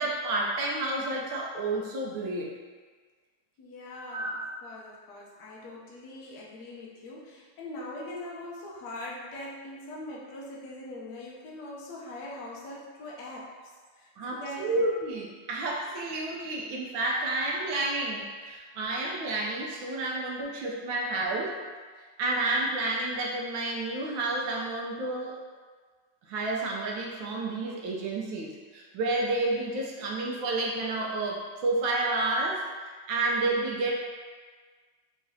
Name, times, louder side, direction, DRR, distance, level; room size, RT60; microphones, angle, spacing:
voice 1, 0.0-2.6 4.1-4.4 14.2-21.6 22.2-25.4 26.3-33.9, right 2 dB, 75° right, -2 dB, 1.3 m, -30 dB
voice 2, 3.6-14.9 20.0-20.2 21.0-21.1, left 1 dB, 65° left, -4 dB, 1.1 m, -42 dB
4.8 x 3.1 x 2.7 m, 1.5 s
omnidirectional pair, 2.3 m